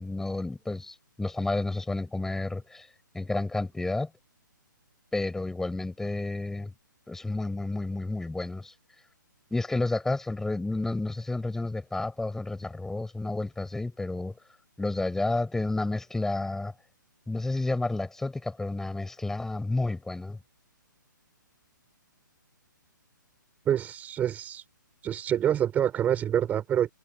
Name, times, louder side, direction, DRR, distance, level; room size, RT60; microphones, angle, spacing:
voice 1, 0.0-2.9 3.1-4.1 5.1-6.7 7.1-8.7 9.5-14.3 14.8-16.7 17.3-20.4, left 2 dB, 5° left, 7.4 m, -31 dB
voice 2, 23.7-24.6 25.0-26.9, right 10 dB, 15° right, 6.1 m, -26 dB
figure-of-eight pair, 130°, 11 cm